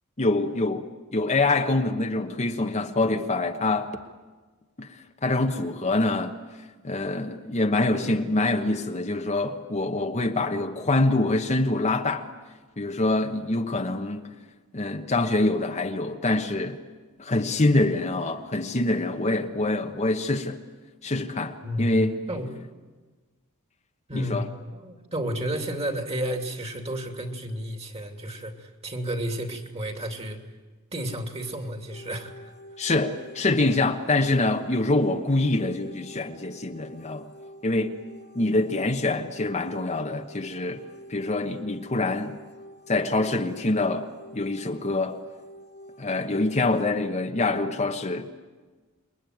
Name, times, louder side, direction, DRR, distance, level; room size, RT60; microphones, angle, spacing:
voice 1, 0.2-0.9 1.1-3.9 4.8-6.4 6.8-12.2 12.8-14.3 14.7-16.8 17.2-20.6 21.0-22.2 24.1-24.5 32.8-37.3 37.6-37.9 38.3-40.8 41.1-42.4 42.9-45.2 46.0-48.3, left 2 dB, 30° left, 1.2 m, -25 dB
voice 2, 21.6-22.5 24.1-24.4 24.7-30.4 30.9-32.3, equal, 30° right, 2.9 m, -32 dB
sound 1, 31.9-46.9, equal, 50° left, 2.3 m, -47 dB
28.0 x 22.0 x 9.3 m
head